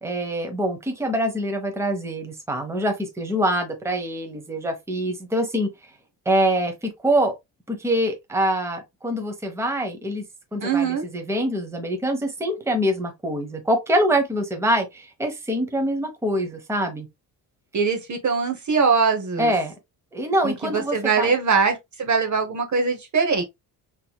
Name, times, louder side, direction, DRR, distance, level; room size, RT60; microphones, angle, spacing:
voice 1, 0.0-5.7 6.3-7.3 7.7-10.2 10.5-17.1 19.4-19.7 20.1-21.3, right 1 dB, 5° right, 1.0 m, -24 dB
voice 2, 10.6-11.0 17.7-19.5 20.4-23.4, right 5 dB, 40° right, 1.0 m, -22 dB
3.8 x 2.9 x 2.2 m
supercardioid pair, 70°, 47 cm